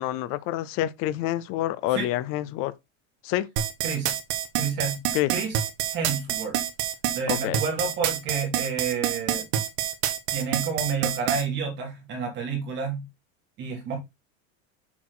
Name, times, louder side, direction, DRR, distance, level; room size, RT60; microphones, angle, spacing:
voice 1, 0.0-2.7 3.2-3.5 5.1-5.3 7.3-7.6, left 14 dB, 40° left, 0.6 m, -27 dB
sound 1, 3.6-11.4, right 11 dB, 75° right, 1.5 m, -27 dB
voice 2, 3.8-4.1 4.5-5.0 5.3-5.5 5.9-6.6 7.1-9.5 10.3-13.0 13.6-14.0, right 5 dB, 35° right, 2.7 m, -29 dB
7.2 x 4.7 x 3.9 m
cardioid pair, 175°, 33 cm